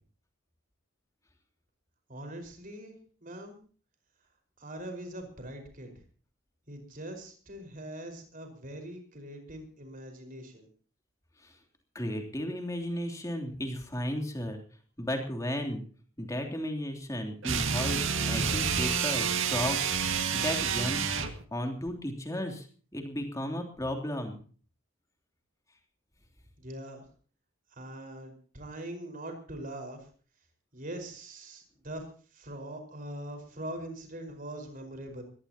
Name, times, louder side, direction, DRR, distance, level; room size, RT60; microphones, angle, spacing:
voice 1, 2.1-2.9 3.2-3.6 4.6-5.9 6.7-10.7 26.6-27.0 27.8-30.1 30.7-32.0 32.3-35.2, right 1 dB, 40° right, 5 dB, 5.1 m, -42 dB
voice 2, 11.9-14.6 15.0-15.8 16.2-21.1 21.5-22.7 22.9-24.4, left 1 dB, 15° left, 4 dB, 3.2 m, -34 dB
sound 1, 17.4-21.4, right 6 dB, 70° right, 2.0 m, -29 dB
22.5 x 18.5 x 3.0 m, 0.41 s
head